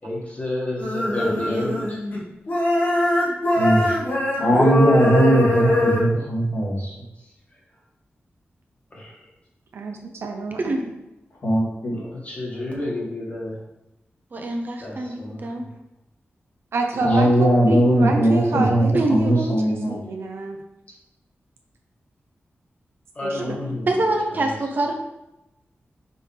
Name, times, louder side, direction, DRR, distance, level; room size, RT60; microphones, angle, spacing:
voice 1, 0.0-2.0 8.9-9.2 11.9-13.6 14.8-15.7 16.9-17.3 23.2-24.5, left 1 dB, 35° left, -3 dB, 1.7 m, -31 dB
sound 1, 0.8-2.2 2.5-6.1, left 1 dB, 50° left, 1.7 m, -22 dB
voice 2, 1.3-1.8 9.7-10.8 16.7-20.6 23.2-23.7, right 2 dB, 85° right, 2 dB, 0.9 m, -27 dB
voice 3, 3.6-3.9 4.4-6.9 11.4-12.0 17.0-18.8 19.1-19.9, right 1 dB, 65° left, -6 dB, 2.3 m, -19 dB
voice 4, 14.3-15.7 18.9-19.4 23.9-24.9, right 2 dB, 45° right, 3 dB, 0.8 m, -24 dB
5.4 x 5.4 x 3.4 m, 0.92 s
wide cardioid pair, 150°, 4 cm